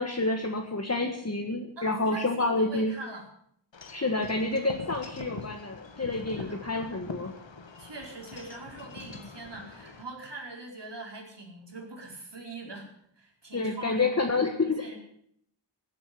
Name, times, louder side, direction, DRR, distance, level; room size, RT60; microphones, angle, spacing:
voice 1, 0.0-2.9 3.9-7.3 13.5-14.9, left 2 dB, 35° left, 3 dB, 1.7 m, -28 dB
voice 2, 1.8-3.3 6.4-6.6 7.8-15.0, right 2 dB, 65° right, 0 dB, 4.8 m, -43 dB
Wind chime / Wind, 3.7-10.0, left 4 dB, 75° left, 1.8 m, -43 dB
16.5 x 8.6 x 9.7 m, 0.69 s
wide cardioid pair, 75°, 45 cm